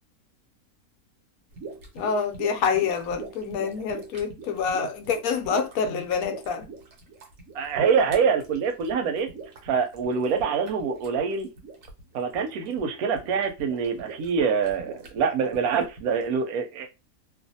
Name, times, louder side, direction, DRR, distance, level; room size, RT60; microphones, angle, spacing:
sound 1, 1.5-16.3, right 4 dB, 70° right, 1.2 m, -43 dB
voice 1, 1.9-6.7, left 6 dB, 80° left, 1.0 m, -27 dB
voice 2, 7.5-9.3 9.6-11.5 12.1-16.9, right 6 dB, 90° right, 1.1 m, -25 dB
2.5 x 2.4 x 2.6 m
omnidirectional pair, 1.5 m